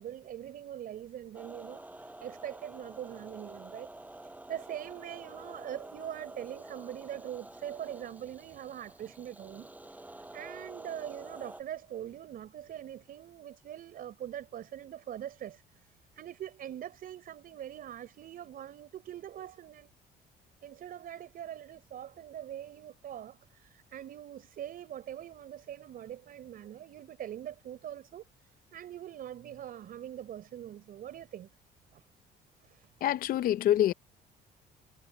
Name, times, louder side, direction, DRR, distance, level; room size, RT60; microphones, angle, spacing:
voice 1, 0.0-3.9 4.2-19.9 20.6-31.5 31.9-32.0 32.6-32.9, right 11 dB, 60° right, 5.0 m, -43 dB
sound 1, 1.3-11.6, right 2 dB, 10° right, 5.7 m, -49 dB
voice 2, 33.0-33.9, left 12 dB, 60° left, 0.6 m, -26 dB
cardioid pair, 110°, 17 cm